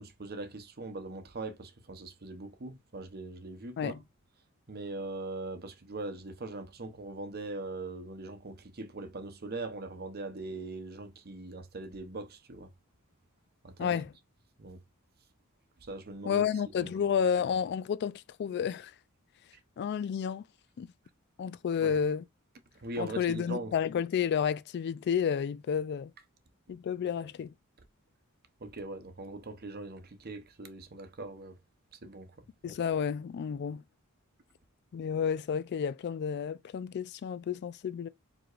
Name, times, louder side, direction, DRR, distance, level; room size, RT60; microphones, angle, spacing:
voice 1, 0.0-4.0 4.7-12.7 13.6-14.0 14.6-14.8 15.9-16.4 16.8-16.9 21.8-21.9 22.8-23.7 28.6-31.6 32.0-32.3, right 2 dB, 50° right, 0.8 m, -41 dB
voice 2, 13.8-14.1 16.3-18.9 19.8-20.4 20.8-20.9 21.4-22.2 23.0-26.1 26.7-27.5 32.6-33.8 34.9-38.1, left 7 dB, 50° left, 0.3 m, -31 dB
4.8 x 3.6 x 2.5 m
head